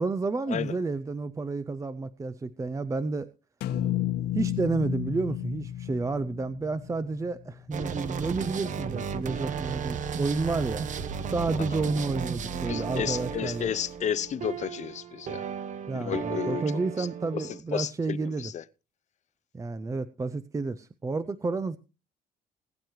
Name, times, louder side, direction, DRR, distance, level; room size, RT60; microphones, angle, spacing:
voice 1, 0.0-3.3 4.3-10.9 11.3-13.7 15.9-18.5 19.5-21.8, right 3 dB, 20° right, 0.6 m, -30 dB
sound 1, 3.6-7.8, left 12 dB, 80° left, 1.4 m, -32 dB
sound 2, 7.7-17.6, right 6 dB, 45° right, 1.0 m, -34 dB
voice 2, 12.7-15.4 15.9-16.6 17.0-17.1 17.3-18.6, left 9 dB, 45° left, 0.6 m, -32 dB
20.5 x 9.0 x 3.1 m
cardioid pair, 110°, 17 cm